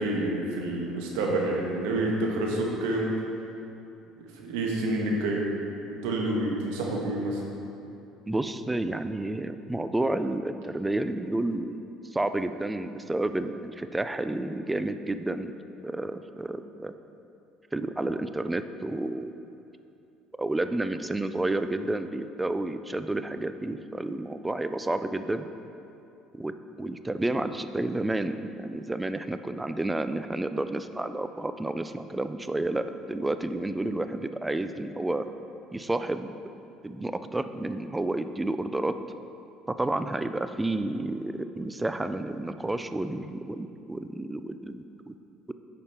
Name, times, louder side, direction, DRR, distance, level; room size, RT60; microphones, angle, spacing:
voice 1, 0.0-3.1 4.3-5.5 5.9-7.4, right 1 dB, 85° right, -1 dB, 1.3 m, -28 dB
voice 2, 8.3-16.9 17.7-19.4 20.4-25.5 26.3-26.5 26.8-35.3 35.7-36.3 36.8-39.0 39.7-45.1, right 2 dB, 10° right, 10 dB, 0.4 m, -30 dB
8.6 x 5.3 x 4.4 m, 2.8 s
supercardioid pair, 90°, 0 cm